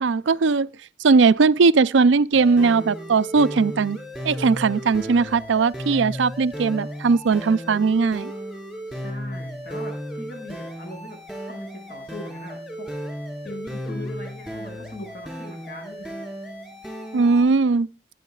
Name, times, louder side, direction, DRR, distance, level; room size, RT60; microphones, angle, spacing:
voice 1, 0.0-0.7 1.0-4.0 4.2-8.3 17.1-17.9, right 4 dB, 85° right, 0.5 m, -19 dB
sound 1, 2.3-17.4, equal, ahead, 4.6 m, -34 dB
voice 2, 8.9-12.9 13.4-16.2, left 2 dB, 55° left, 5.9 m, -40 dB
20.5 x 9.2 x 2.4 m
head